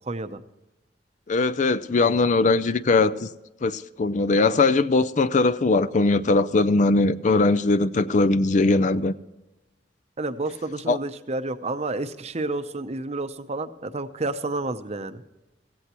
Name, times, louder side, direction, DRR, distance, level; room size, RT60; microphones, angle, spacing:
voice 1, 0.1-0.4 10.2-15.2, right 2 dB, 35° right, 0.7 m, -30 dB
voice 2, 1.3-3.3 3.6-9.1 10.9-11.0, left 3 dB, 45° left, 0.4 m, -20 dB
16.0 x 15.5 x 3.0 m
head